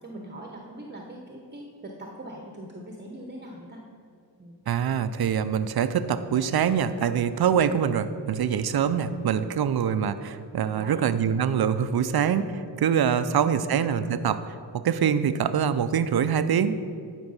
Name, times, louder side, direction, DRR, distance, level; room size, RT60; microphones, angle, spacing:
voice 1, 0.0-3.8 4.4-4.6 10.7-11.2, right 1 dB, 25° right, 0 dB, 1.0 m, -41 dB
voice 2, 4.7-14.4 14.7-16.8, right 8 dB, 55° right, 12 dB, 0.6 m, -24 dB
10.5 x 4.7 x 5.5 m, 2.3 s
cardioid pair, 65°, 44 cm